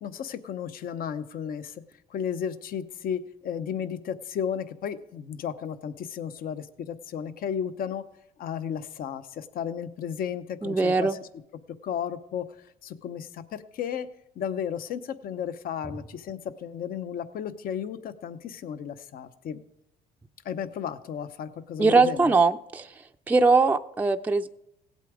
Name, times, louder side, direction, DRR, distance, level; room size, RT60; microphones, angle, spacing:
voice 1, 0.0-1.8 2.1-8.0 8.4-11.3 11.8-14.1 14.4-19.6 20.4-22.4, left 8 dB, 60° left, 12 dB, 0.8 m, -34 dB
voice 2, 10.6-11.2 21.8-22.9 23.3-24.5, right 3 dB, 10° right, 6 dB, 0.4 m, -21 dB
16.5 x 8.2 x 5.0 m, 0.83 s
cardioid pair, 110°, 17 cm